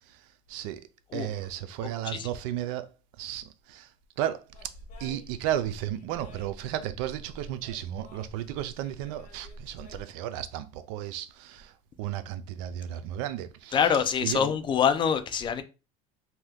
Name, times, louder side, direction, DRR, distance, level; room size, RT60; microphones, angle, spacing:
voice 1, 0.5-0.8 1.1-2.9 3.2-3.9 4.2-4.4 5.0-11.7 12.0-13.8 14.2-14.4, right 12 dB, 75° right, 0.4 m, -33 dB
sound 1, 4.5-10.0, equal, 45° left, 1.2 m, -48 dB
voice 2, 13.7-15.6, left 7 dB, 30° left, 0.4 m, -25 dB
2.8 x 2.2 x 3.4 m
supercardioid pair, 120°, 17 cm